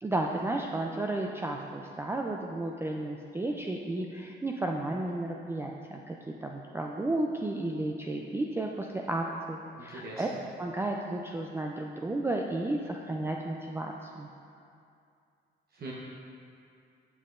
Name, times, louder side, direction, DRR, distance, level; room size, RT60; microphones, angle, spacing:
voice 1, 0.0-10.3 10.6-14.3, right 2 dB, 10° right, 0 dB, 0.3 m, -33 dB
voice 2, 9.8-10.4 15.7-15.9, right 2 dB, 50° right, -4 dB, 0.8 m, -42 dB
8.2 x 5.6 x 2.5 m, 2.5 s
cardioid pair, 90°, 20 cm